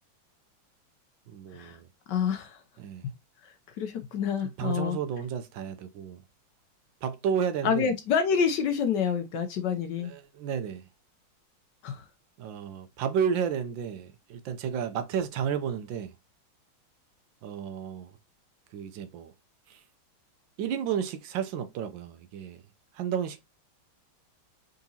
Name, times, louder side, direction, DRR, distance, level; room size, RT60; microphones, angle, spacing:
voice 1, 1.3-1.9 2.8-3.0 4.4-6.2 7.0-7.9 10.0-10.8 12.4-16.1 17.4-18.1 18.7-19.3 19.7-19.8 20.6-22.6 22.9-23.4, right 7 dB, 75° right, 1.3 m, -32 dB
voice 2, 2.1-2.6 3.0-3.1 3.4-5.0 7.6-10.1 11.8-12.0, left 7 dB, 70° left, 1.1 m, -28 dB
4.0 x 3.6 x 2.7 m
omnidirectional pair, 2.2 m